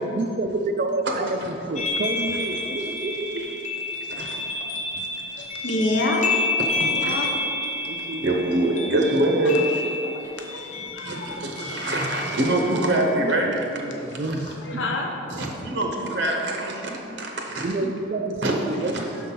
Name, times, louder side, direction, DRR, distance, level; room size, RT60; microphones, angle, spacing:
voice 1, 0.0-3.4 7.8-8.3 10.8-11.2 11.6-12.0 13.2-15.0 15.5-15.6 17.6-19.1, right 2 dB, 40° right, 6 dB, 0.4 m, -30 dB
sound 1, 1.8-13.2, left 3 dB, 35° left, 0.9 m, -30 dB
voice 2, 4.1-4.4 4.9-5.1 6.8-7.3 8.2-9.7 11.0-14.3 15.3-17.7 18.4-18.5 18.8-18.9, right 1 dB, 60° right, 1 dB, 0.7 m, -25 dB
voice 3, 5.3-6.2 6.8-7.3 9.4-11.5 13.3-13.4 13.9-14.2 14.4-15.1, left 2 dB, 70° left, 1 dB, 0.8 m, -29 dB
6.3 x 3.9 x 5.7 m, 2.9 s
head